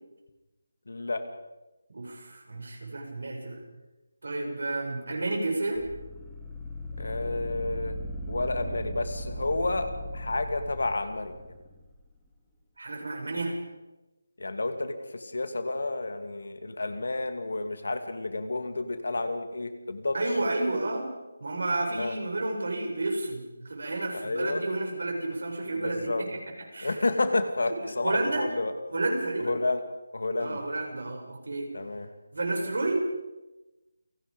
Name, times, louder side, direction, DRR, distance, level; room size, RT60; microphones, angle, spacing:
voice 1, 0.9-1.2 7.0-8.0 8.3-11.3 14.4-20.2 22.0-22.1 24.1-24.6 25.8-26.2 26.8-28.7 29.4-29.8 30.1-30.6 31.7-32.1, left 2 dB, 70° left, 8 dB, 2.7 m, -30 dB
voice 2, 1.9-3.6 4.2-5.8 12.8-13.6 20.1-21.1 21.4-26.3 26.7-27.0 28.0-28.5 28.9-29.5 30.4-31.7 32.3-33.0, right 2 dB, 65° right, 1 dB, 7.6 m, -31 dB
sound 1, 5.8-11.9, equal, 5° left, 3.7 m, -38 dB
29.0 x 18.0 x 5.5 m, 1.1 s
figure-of-eight pair, 160°, 0 cm